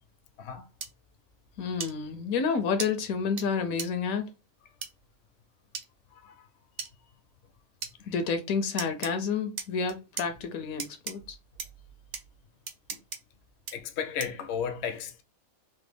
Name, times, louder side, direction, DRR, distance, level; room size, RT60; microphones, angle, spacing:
sound 1, 0.8-0.9 1.8-1.9 2.8-2.9 3.4-3.5 3.8-3.9 4.8-4.9 5.7-5.9 6.8-6.9 7.8-7.9 8.8-9.1 9.6-10.3 10.8-11.1 11.6-11.7 12.1-12.2 12.7-13.2 13.7-13.8 14.2-14.4, right 5 dB, 75° right, 0.4 m, -36 dB
voice 1, 1.6-4.3 8.1-11.4, left 5 dB, 80° left, 1.1 m, -30 dB
voice 2, 6.1-6.5 8.0-8.1 12.9-13.0 13.7-15.2, left 7 dB, 65° left, 0.7 m, -35 dB
3.2 x 2.2 x 3.3 m
omnidirectional pair, 1.5 m